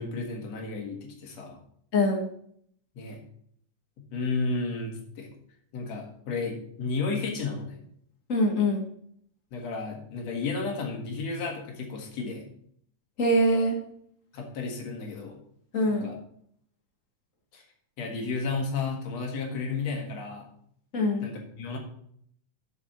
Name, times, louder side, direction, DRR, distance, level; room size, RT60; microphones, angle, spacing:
voice 1, 0.0-1.6 2.9-3.2 4.0-5.3 5.7-7.8 9.5-12.4 14.3-15.4 15.9-16.2 17.5-17.6 18.0-20.5 21.2-21.8, left 4 dB, 60° left, 1 dB, 2.8 m, -33 dB
voice 2, 1.9-2.3 8.3-8.8 13.2-13.8 15.7-16.1 20.9-21.3, left 1 dB, 45° left, 2 dB, 1.1 m, -23 dB
7.2 x 7.0 x 6.0 m, 0.65 s
omnidirectional pair, 3.6 m